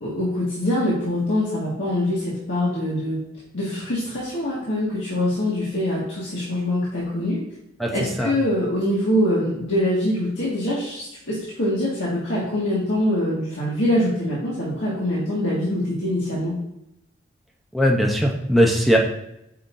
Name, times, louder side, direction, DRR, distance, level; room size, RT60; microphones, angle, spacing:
voice 1, 0.0-3.2 3.5-7.4 7.9-16.5, left 1 dB, 70° left, -7 dB, 1.9 m, -24 dB
voice 2, 17.7-19.0, equal, ahead, -2 dB, 0.7 m, -19 dB
8.4 x 5.7 x 2.7 m, 0.83 s
head